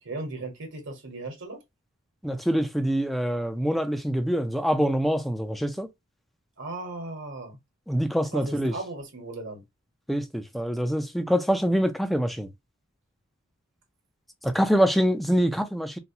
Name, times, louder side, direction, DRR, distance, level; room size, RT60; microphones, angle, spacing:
voice 1, 0.0-1.6 6.6-7.6 8.3-9.6, right 2 dB, 60° right, 1.3 m, -36 dB
voice 2, 2.2-5.9 7.9-8.7 10.1-12.5 14.4-16.0, equal, ahead, 0.5 m, -25 dB
4.0 x 2.2 x 2.7 m
head